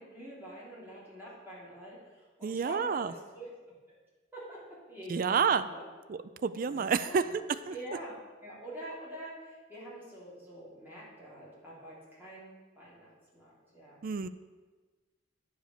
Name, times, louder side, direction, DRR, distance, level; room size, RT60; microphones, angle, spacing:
voice 1, 0.0-3.5 4.3-4.6 4.9-5.8 6.6-7.4 7.7-8.1 8.4-14.0, right 1 dB, 10° right, -8 dB, 3.1 m, -46 dB
voice 2, 2.4-3.1 5.1-5.6 6.1-7.7 14.0-14.3, right 6 dB, 45° right, 13 dB, 0.3 m, -29 dB
9.0 x 5.0 x 6.6 m, 1.3 s
head